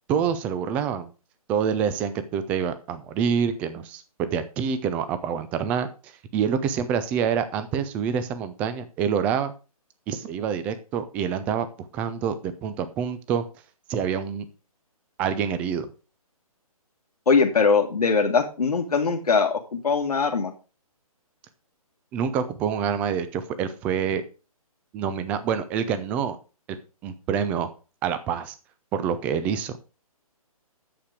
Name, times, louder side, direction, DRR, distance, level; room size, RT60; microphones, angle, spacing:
voice 1, 0.1-1.1 1.5-9.5 10.1-13.4 13.9-14.5 15.2-15.9 22.1-24.2 24.9-26.4 27.0-27.7 28.0-28.6 28.9-29.8, right 7 dB, 5° right, 12 dB, 0.3 m, -27 dB
voice 2, 17.3-20.5, left 5 dB, 85° left, 2 dB, 1.6 m, -21 dB
8.8 x 6.5 x 4.9 m, 0.32 s
hypercardioid pair, 155°, 19 cm